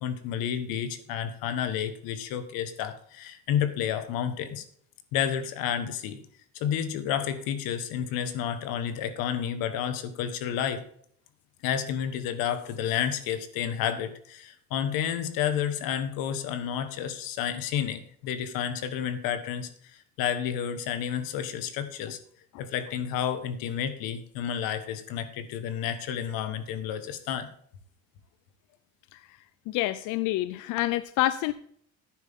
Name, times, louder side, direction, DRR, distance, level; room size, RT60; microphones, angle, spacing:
voice 1, 0.0-4.6 5.1-6.2 6.5-10.8 11.6-22.2 22.6-27.5, left 9 dB, 90° left, 11 dB, 1.5 m, -30 dB
voice 2, 29.7-31.5, left 15 dB, 65° left, 15 dB, 0.5 m, -27 dB
11.0 x 9.4 x 3.6 m, 0.63 s
cardioid pair, 175°, 34 cm